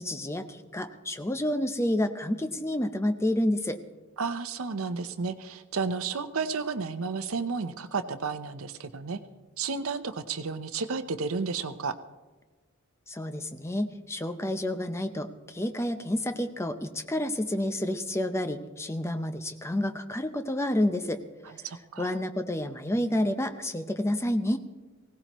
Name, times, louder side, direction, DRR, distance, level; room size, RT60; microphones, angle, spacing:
voice 1, 0.0-3.8 13.1-21.2 22.0-24.6, left 1 dB, 10° left, 9 dB, 0.6 m, -29 dB
voice 2, 4.2-9.2 9.6-11.9 21.6-22.2, right 4 dB, 70° right, 10 dB, 0.7 m, -32 dB
19.5 x 17.0 x 3.0 m, 1.3 s
head